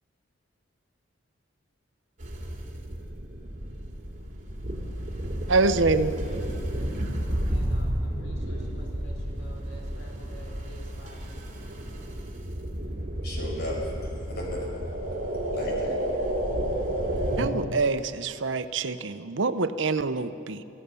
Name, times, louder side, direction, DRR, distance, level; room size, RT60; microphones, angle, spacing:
sound 1, 2.2-17.5, right 1 dB, 45° right, 2.9 m, -31 dB
voice 1, 5.5-6.1 17.4-20.6, right 3 dB, 70° right, 12 dB, 0.8 m, -25 dB
voice 2, 7.5-11.5, right 1 dB, 75° left, 0 dB, 4.5 m, -50 dB
voice 3, 13.2-14.7 15.0-16.0 16.2-16.4, left 1 dB, 55° left, -1 dB, 5.5 m, -36 dB
24.0 x 16.0 x 6.9 m, 2.6 s
head